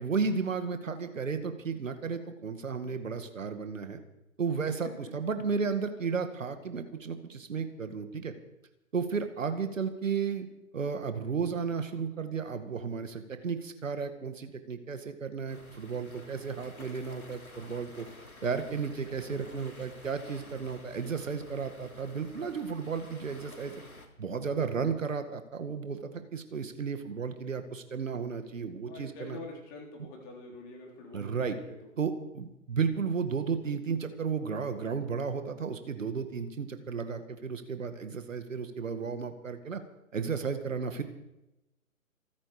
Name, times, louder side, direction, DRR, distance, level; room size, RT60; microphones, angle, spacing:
voice 1, 0.0-4.0 4.4-8.3 8.9-10.5 10.7-18.1 18.4-23.7 24.2-29.4 31.1-31.6 32.0-39.8 40.1-41.0, right 5 dB, 65° right, 8 dB, 2.0 m, -33 dB
voice 2, 4.5-4.9 28.9-31.8, left 2 dB, 20° left, 0 dB, 3.7 m, -46 dB
sound 1, 15.5-24.1, left 2 dB, 90° left, 3.3 m, -51 dB
27.0 x 9.8 x 5.0 m, 0.90 s
figure-of-eight pair, 140°, 42 cm